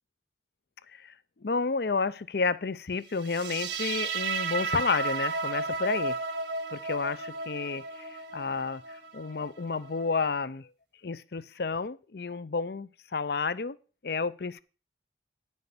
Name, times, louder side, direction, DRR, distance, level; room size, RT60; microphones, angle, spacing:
voice 1, 1.4-6.2 6.7-10.7 11.0-13.8 14.0-14.6, left 4 dB, 60° left, 0.6 m, -31 dB
sound 1, 3.2-10.3, right 4 dB, 75° right, 1.5 m, -34 dB
10.5 x 6.4 x 6.8 m
head